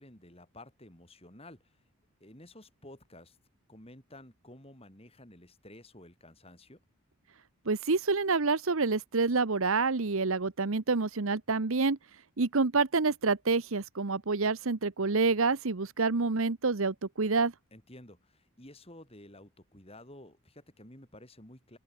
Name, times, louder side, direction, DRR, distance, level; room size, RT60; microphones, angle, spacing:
voice 1, 0.0-1.6 2.2-3.4 3.7-6.8 17.7-21.8, left 1 dB, 25° left, 6.4 m, -52 dB
voice 2, 7.7-12.0 12.4-17.5, right 4 dB, 65° right, 1.0 m, -28 dB
open air
head